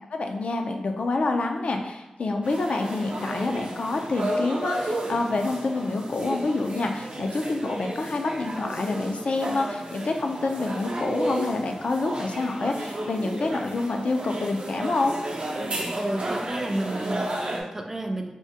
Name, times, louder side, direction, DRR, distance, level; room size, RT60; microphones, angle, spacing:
voice 1, 0.1-15.2, left 3 dB, 70° left, 4 dB, 0.3 m, -27 dB
sound 1, 2.4-17.6, right 1 dB, 65° right, 0.6 m, -33 dB
voice 2, 15.9-18.3, right 1 dB, 20° right, 3 dB, 0.3 m, -31 dB
3.5 x 2.1 x 2.7 m, 0.98 s
wide cardioid pair, 70°, 2 cm